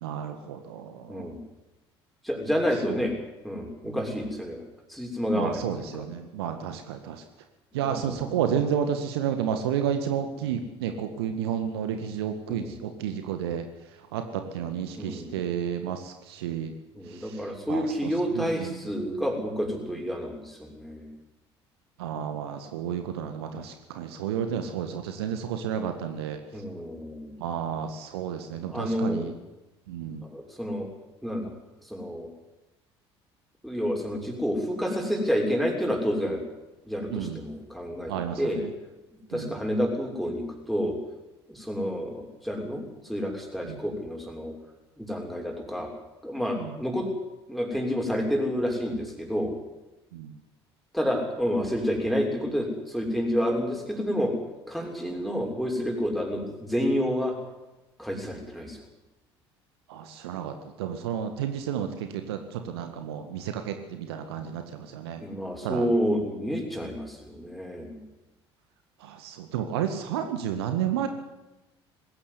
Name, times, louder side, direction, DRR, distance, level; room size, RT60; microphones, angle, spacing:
voice 1, 0.0-1.3 2.9-3.0 3.8-4.0 5.3-7.2 7.7-13.7 14.1-16.7 17.1-17.4 17.7-18.8 22.0-26.4 27.4-29.3 29.9-30.2 37.1-37.4 38.1-38.7 39.3-39.5 43.6-43.8 46.6-46.7 50.1-50.4 59.9-65.2 65.6-65.9 69.0-71.1, right 8 dB, 70° right, 7 dB, 1.8 m, -31 dB
voice 2, 1.1-1.4 2.2-3.2 3.4-4.6 4.9-6.1 7.8-8.3 12.5-12.8 15.0-15.4 16.9-21.1 26.5-27.3 28.7-29.3 30.2-30.9 31.2-31.5 31.8-32.3 33.6-36.4 36.8-38.6 39.3-41.0 41.5-44.5 45.0-45.9 46.2-47.1 47.5-49.6 50.9-54.4 54.7-57.4 58.0-58.8 65.2-68.0, equal, ahead, 2 dB, 6.5 m, -29 dB
20.5 x 17.0 x 9.8 m, 1.0 s
figure-of-eight pair, 60°, 14 cm